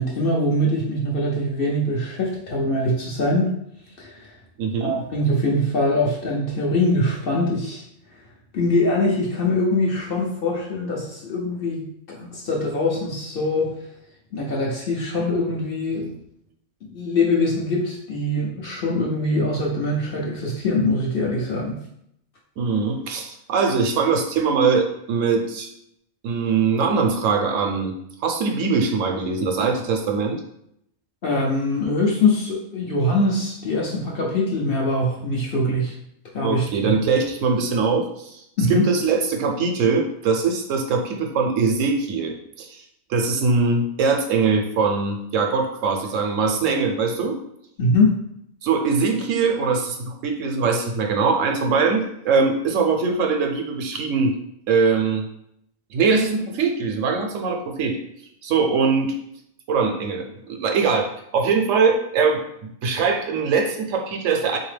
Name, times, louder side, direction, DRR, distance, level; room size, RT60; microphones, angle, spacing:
voice 1, 0.0-3.5 4.0-4.3 4.8-7.8 8.5-13.7 14.3-16.2 16.8-21.8 31.2-36.0 36.3-37.0 38.6-38.9 47.8-48.2, left 1 dB, 55° left, -2 dB, 0.7 m, -23 dB
voice 2, 4.6-4.9 22.6-25.7 26.2-27.9 28.2-30.4 36.4-38.4 38.7-42.8 43.1-47.4 48.6-54.3 54.7-55.3 55.9-58.0 58.4-59.2 59.7-62.4 62.8-64.6, right 4 dB, 75° right, 3 dB, 1.0 m, -22 dB
3.7 x 2.7 x 3.3 m, 0.75 s
omnidirectional pair, 1.4 m